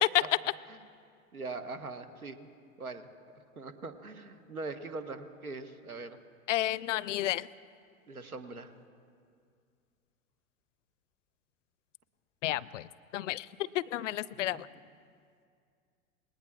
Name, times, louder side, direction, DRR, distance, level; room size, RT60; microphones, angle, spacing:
voice 1, 1.3-2.5 2.8-3.1 3.6-6.2 8.1-8.7 14.5-14.6, right 3 dB, 90° right, 9 dB, 1.2 m, -41 dB
voice 2, 6.5-7.5 12.4-14.7, left 14 dB, 60° left, 20 dB, 0.5 m, -32 dB
27.0 x 20.0 x 2.4 m, 2.3 s
figure-of-eight pair, 90°, 42 cm